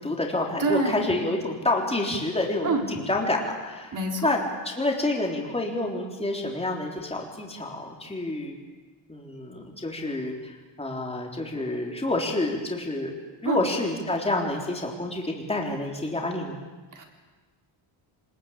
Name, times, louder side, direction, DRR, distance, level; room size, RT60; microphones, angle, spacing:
voice 1, 0.0-4.0 4.2-8.6 9.1-13.1 13.4-16.6, left 2 dB, 10° left, 0 dB, 3.8 m, -28 dB
voice 2, 0.6-1.0 2.6-2.9 3.9-4.3 13.4-13.6 16.9-17.0, right 3 dB, 40° right, 2 dB, 4.3 m, -26 dB
25.5 x 21.0 x 8.9 m, 1.3 s
wide cardioid pair, 145°, 48 cm